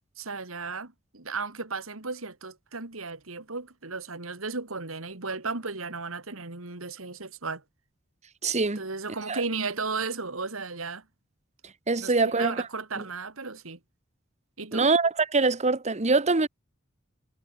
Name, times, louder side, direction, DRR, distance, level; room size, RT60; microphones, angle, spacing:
voice 1, 0.2-7.6 8.8-11.0 12.0-13.8 14.6-14.9, right 4 dB, 75° right, 2.6 m, -35 dB
voice 2, 8.4-8.8 9.3-9.4 11.9-12.6 13.0-13.1 14.7-16.5, right 3 dB, 35° right, 1.3 m, -24 dB
head